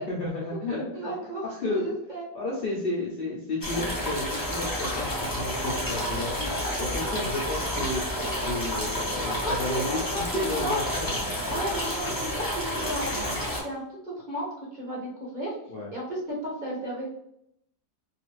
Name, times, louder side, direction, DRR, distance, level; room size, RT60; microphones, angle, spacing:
voice 1, 0.0-1.3 1.6-1.9 2.3-8.2 8.5-11.1 15.7-15.9, left 2 dB, 60° left, -4 dB, 0.6 m, -32 dB
voice 2, 0.9-2.3 6.4-6.9 9.4-10.8 11.5-13.2 13.6-14.5 14.7-15.5 15.9-17.1, right 1 dB, 50° right, -5 dB, 0.6 m, -34 dB
sound 1, 3.6-13.6, equal, 20° left, 0.7 m, -30 dB
2.4 x 2.4 x 3.0 m, 0.75 s
omnidirectional pair, 1.5 m